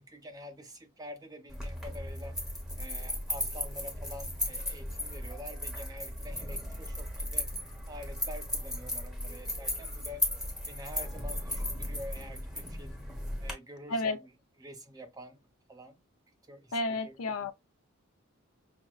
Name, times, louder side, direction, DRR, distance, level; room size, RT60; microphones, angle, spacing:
voice 1, 0.0-2.4 2.8-7.5 7.9-10.3 10.7-13.0 13.4-14.3 14.6-15.4 15.7-16.0 16.5-17.2, left 1 dB, 15° right, 0.6 m, -47 dB
sound 1, 1.5-13.5, left 1 dB, ahead, 0.9 m, -36 dB
voice 2, 16.7-17.5, left 2 dB, 75° left, 0.5 m, -31 dB
5.9 x 2.1 x 2.3 m
head